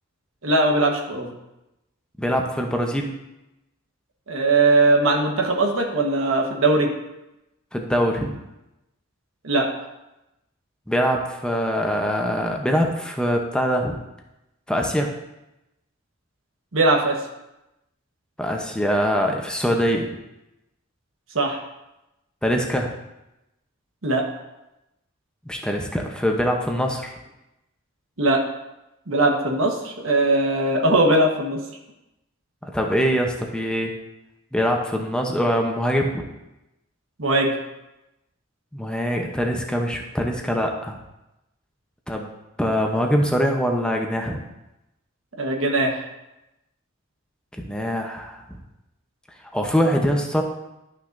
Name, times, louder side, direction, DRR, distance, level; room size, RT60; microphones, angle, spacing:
voice 1, 0.4-1.3 4.3-6.9 9.4-9.7 16.7-17.2 21.3-21.6 24.0-24.2 28.2-28.4 29.1-31.6 37.2-37.6 45.4-46.0, right 2 dB, 80° right, 2 dB, 1.3 m, -20 dB
voice 2, 2.2-3.1 7.7-8.4 10.9-14.0 14.7-15.1 18.4-20.1 22.4-22.9 25.5-27.1 32.6-33.9 34.5-36.2 38.7-41.0 42.1-42.3 42.6-44.4 47.6-48.6 49.5-50.4, equal, 5° left, 2 dB, 0.7 m, -23 dB
12.0 x 5.9 x 2.6 m, 0.93 s
head